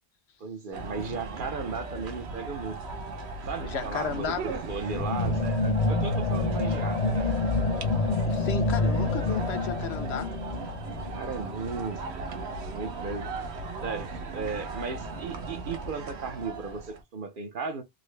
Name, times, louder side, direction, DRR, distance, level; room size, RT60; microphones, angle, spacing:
voice 1, 0.4-2.8 3.5-7.4 11.2-13.3 13.8-17.8, right 5 dB, 55° right, 0.7 m, -36 dB
sound 1, 0.7-17.0, right 3 dB, 75° right, 1.0 m, -37 dB
voice 2, 3.7-4.4 8.3-10.3, left 7 dB, 75° left, 1.0 m, -33 dB
sound 2, 4.8-11.6, left 2 dB, 55° left, 0.4 m, -28 dB
3.7 x 2.0 x 3.1 m
omnidirectional pair, 1.1 m